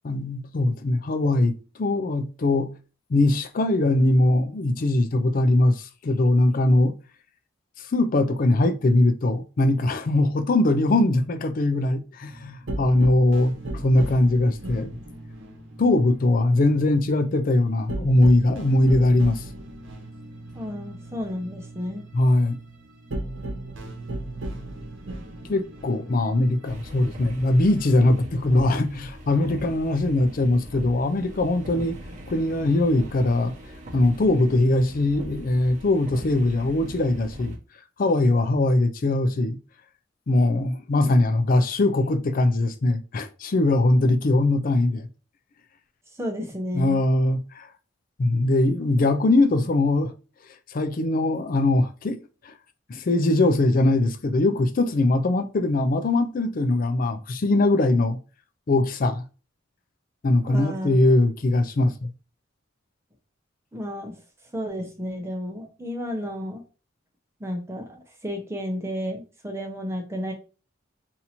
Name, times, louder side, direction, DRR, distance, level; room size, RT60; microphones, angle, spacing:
voice 1, 0.0-2.7 3.1-6.9 7.8-14.9 15.8-19.4 22.1-22.6 25.5-32.0 32.3-33.6 33.9-37.6 38.0-39.6 40.3-45.1 46.7-47.7 48.2-50.1 50.7-52.2 52.4-52.5 52.9-58.2 58.7-59.2 60.2-62.1, left 2 dB, 45° left, 0.4 m, -21 dB
sound 1, 12.3-28.0, right 1 dB, 75° right, 0.9 m, -37 dB
voice 2, 20.5-22.0 46.1-47.0 60.4-61.0 63.7-64.2 64.5-66.6 67.4-70.3, equal, 15° right, 0.8 m, -32 dB
sound 2, 26.6-37.6, equal, 40° right, 0.9 m, -40 dB
2.8 x 2.6 x 4.2 m
head